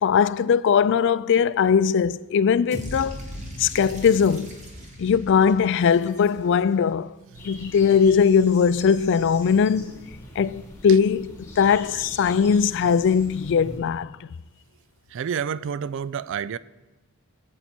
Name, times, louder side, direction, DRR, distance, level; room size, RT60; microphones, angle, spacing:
voice 1, 0.0-3.2 3.6-4.5 5.0-7.1 7.4-9.9 10.4-14.1, left 6 dB, 55° left, 0.3 m, -20 dB
sound 1, 2.7-6.8, equal, 35° right, 1.7 m, -38 dB
sound 2, 7.3-13.8, left 1 dB, 15° left, 4.0 m, -42 dB
voice 2, 15.1-16.6, right 7 dB, 55° right, 0.3 m, -30 dB
18.0 x 8.3 x 4.4 m
head